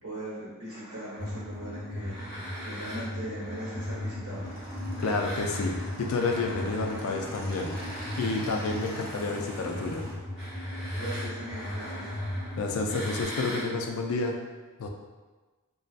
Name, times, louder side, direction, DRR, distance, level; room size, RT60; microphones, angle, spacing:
voice 1, 0.0-2.3 2.6-4.5 11.0-12.2, right 1 dB, 75° right, -7 dB, 1.1 m, -39 dB
sound 1, 0.7-4.6 5.0-13.7, equal, 5° right, 1.2 m, -43 dB
sound 2, 1.2-13.2, left 1 dB, 15° left, 0.7 m, -37 dB
Motorcycle / Engine, 4.3-10.1, equal, 40° right, 0.6 m, -42 dB
voice 2, 5.0-7.8 8.2-10.1 12.6-14.3 14.8-14.9, left 3 dB, 65° left, 2 dB, 0.3 m, -30 dB
2.5 x 2.2 x 2.4 m, 1.3 s
head